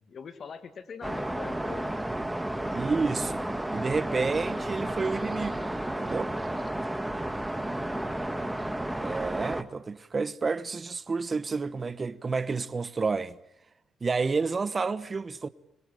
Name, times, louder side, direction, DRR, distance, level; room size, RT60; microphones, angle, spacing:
voice 1, 0.0-2.0 7.6-8.1, left 6 dB, 50° left, 2.1 m, -44 dB
sound 1, 1.0-9.6, right 1 dB, 5° right, 1.6 m, -32 dB
voice 2, 2.7-3.4 3.7-5.7 6.0-6.3 9.0-13.4 14.0-15.5, right 4 dB, 30° right, 1.1 m, -30 dB
25.0 x 21.5 x 9.2 m
cardioid pair, 90°, 0 cm